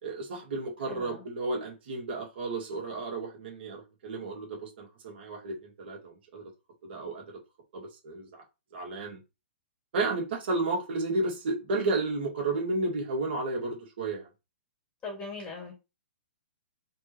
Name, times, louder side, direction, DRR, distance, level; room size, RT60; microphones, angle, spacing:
voice 1, 0.0-6.4 6.8-7.2 7.7-8.4 8.7-9.2 9.9-14.3, right 2 dB, 65° right, 2.1 m, -32 dB
voice 2, 0.8-1.2 15.0-15.7, left 3 dB, 20° left, 2.4 m, -40 dB
3.9 x 3.5 x 3.0 m
hypercardioid pair, 140°, 6 cm